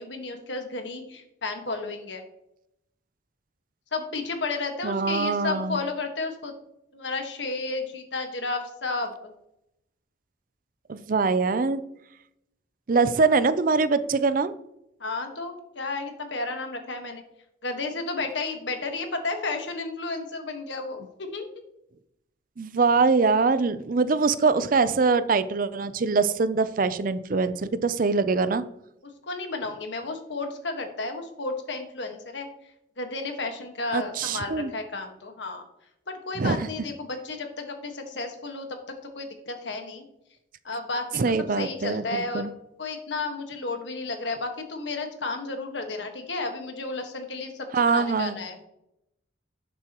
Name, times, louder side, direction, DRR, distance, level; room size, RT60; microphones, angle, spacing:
voice 1, 0.0-2.2 3.9-6.5 6.9-9.1 15.0-17.2 17.6-21.5 29.0-32.5 33.0-35.6 36.1-40.1 40.6-42.5 42.8-48.6, left 3 dB, 75° left, 5 dB, 1.5 m, -32 dB
voice 2, 4.8-5.8 10.9-11.8 12.9-14.5 22.6-28.6 33.9-34.7 36.4-36.7 41.2-42.5 47.7-48.4, right 4 dB, 45° right, 14 dB, 0.5 m, -23 dB
11.5 x 7.1 x 3.0 m, 0.81 s
head